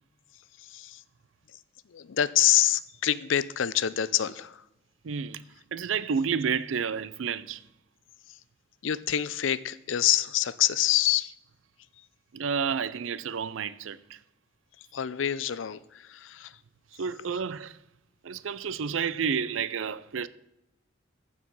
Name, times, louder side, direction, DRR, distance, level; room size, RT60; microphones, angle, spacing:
voice 1, 0.6-1.0 1.5-1.6 1.9-4.6 8.3-8.4 8.8-11.3 14.8-16.6, left 11 dB, 85° left, 0.5 m, -26 dB
voice 2, 5.0-5.4 5.7-7.6 12.3-14.2 17.0-17.8 18.2-20.3, right 6 dB, 90° right, 0.5 m, -30 dB
14.5 x 4.9 x 5.4 m
head